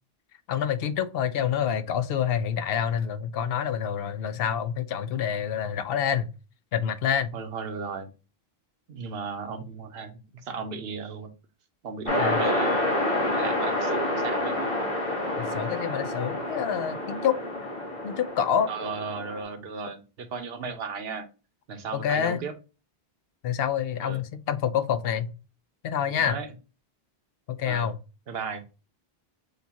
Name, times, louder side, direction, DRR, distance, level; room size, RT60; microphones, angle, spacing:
voice 1, 0.5-6.3 6.7-7.3 12.2-12.5 15.4-17.4 18.0-18.7 21.9-22.4 23.4-25.3 25.8-26.4 27.5-28.0, left 8 dB, 70° left, 0.8 m, -27 dB
voice 2, 7.3-8.1 8.9-10.2 10.4-11.3 11.8-14.6 18.7-21.3 21.7-22.5 24.0-24.2 26.1-26.5 27.7-27.9 28.3-28.6, right 5 dB, 75° right, 1.0 m, -35 dB
sound 1, 12.1-19.4, left 1 dB, 35° left, 1.3 m, -28 dB
6.7 x 2.3 x 2.8 m
omnidirectional pair, 1.0 m